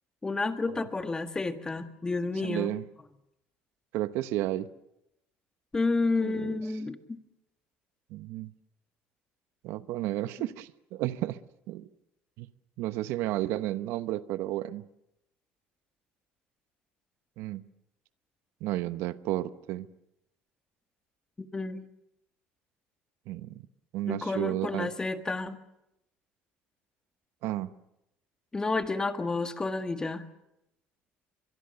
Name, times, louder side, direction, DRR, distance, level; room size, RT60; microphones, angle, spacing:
voice 1, 0.2-2.7 5.7-7.2 21.5-21.8 24.1-25.6 28.5-30.2, left 3 dB, 15° left, 1.7 m, -30 dB
voice 2, 2.4-2.8 3.9-4.7 6.2-6.6 8.1-8.5 9.6-11.4 11.7-11.8 12.4-12.5 12.8-14.8 17.4-17.6 18.6-19.9 23.3-23.6 23.9-24.9 27.4-27.7, right 15 dB, 75° right, 0.9 m, -32 dB
24.5 x 22.5 x 6.9 m
cardioid pair, 120°, 4 cm